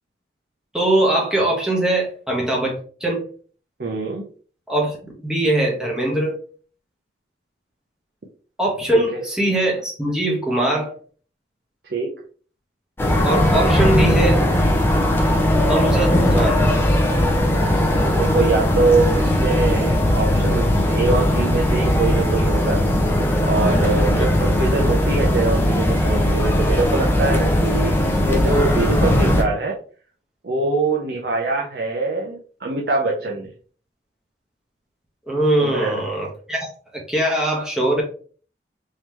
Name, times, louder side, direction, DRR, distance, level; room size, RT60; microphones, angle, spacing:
voice 1, 0.7-3.3 4.7-5.0 5.2-6.4 8.6-10.9 13.2-14.4 15.7-16.7 24.0-24.3 35.3-38.0, right 1 dB, 5° right, -3 dB, 1.0 m, -21 dB
voice 2, 3.8-4.2 8.9-9.0 11.9-12.2 17.4-22.8 23.4-29.7 30.4-33.5 35.6-36.0, right 3 dB, 60° right, 0 dB, 0.7 m, -23 dB
sound 1, 13.0-29.4, left 1 dB, 10° left, 0.6 m, -18 dB
3.8 x 3.0 x 3.1 m, 0.42 s
head